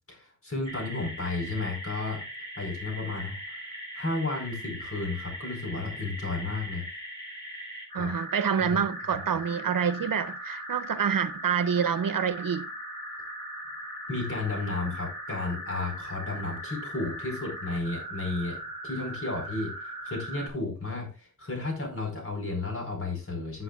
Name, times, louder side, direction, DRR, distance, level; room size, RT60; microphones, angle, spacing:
voice 1, 0.1-2.2 2.6-3.6 3.9-6.8 8.0-8.1 8.7-8.8 14.1-23.6, left 3 dB, 40° left, 4.9 m, -33 dB
sound 1, 0.6-20.5, equal, 15° left, 6.7 m, -39 dB
voice 2, 7.9-12.7, right 7 dB, 90° right, 0.8 m, -27 dB
16.0 x 7.8 x 2.4 m
wide cardioid pair, 105°, 32 cm